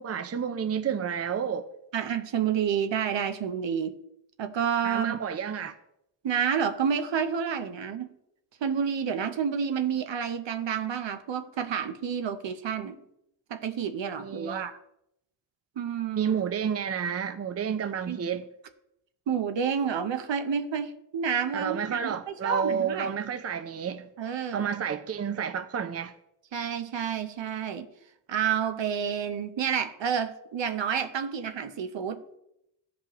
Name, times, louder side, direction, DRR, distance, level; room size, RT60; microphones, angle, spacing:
voice 1, 0.0-1.7 4.8-5.7 14.2-14.7 16.1-18.5 21.5-24.1 24.5-26.1, right 7 dB, 35° right, 0.6 m, -30 dB
voice 2, 1.9-4.0 4.4-5.2 6.2-8.1 8.6-13.0 13.5-14.8 15.8-16.3 17.6-17.8 18.1-18.2 19.3-23.1 24.2-24.7 26.5-27.9 28.3-32.2, right 7 dB, 75° right, 0.8 m, -29 dB
14.5 x 5.2 x 3.0 m
cardioid pair, 70°, 45 cm